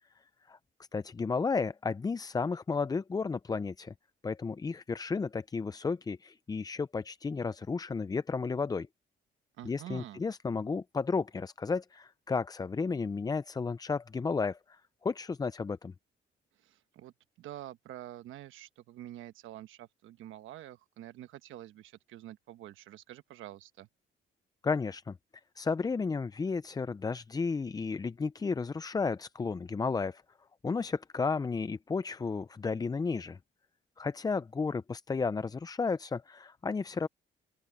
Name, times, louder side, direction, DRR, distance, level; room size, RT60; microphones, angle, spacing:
voice 1, 0.9-3.9 4.2-8.9 9.6-15.9 24.6-25.2 25.6-30.2 30.6-33.4 34.0-37.1, left 4 dB, 20° left, 0.4 m, -33 dB
voice 2, 9.6-10.2 16.6-23.9, right 13 dB, 85° right, 1.1 m, -47 dB
open air
cardioid pair, 90°, 20 cm